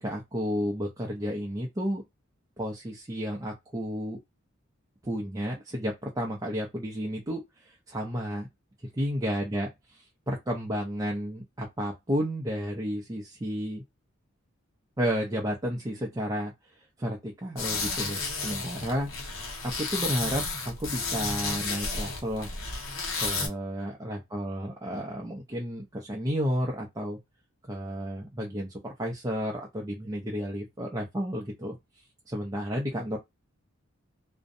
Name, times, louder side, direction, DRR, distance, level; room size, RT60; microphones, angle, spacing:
voice 1, 0.0-2.0 2.6-4.2 5.0-8.5 9.0-13.8 15.0-19.1 19.6-22.5 23.2-27.2 27.7-31.8 32.3-33.2, equal, 15° right, 0.4 m, -32 dB
sound 1, 17.6-23.5, left 3 dB, 90° left, 1.2 m, -32 dB
2.6 x 2.1 x 2.5 m
head